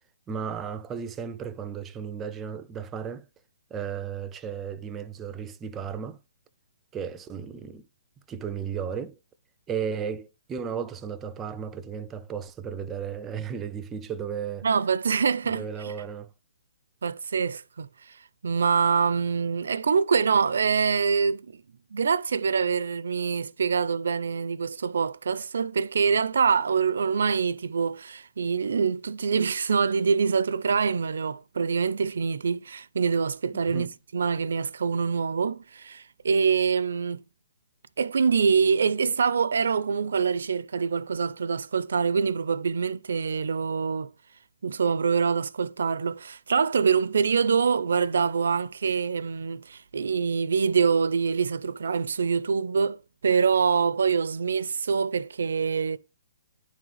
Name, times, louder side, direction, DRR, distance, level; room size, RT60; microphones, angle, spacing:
voice 1, 0.3-3.3 3.7-6.2 6.9-7.8 8.3-9.2 9.7-14.7 15.5-16.3 33.5-33.9, right 7 dB, 15° right, 0.4 m, -34 dB
voice 2, 14.6-15.9 17.0-17.9 18.4-21.6 21.9-37.2 38.0-44.1 44.6-56.0, right 5 dB, 75° right, 0.4 m, -25 dB
9.5 x 3.6 x 3.3 m
hypercardioid pair, 160°, 0 cm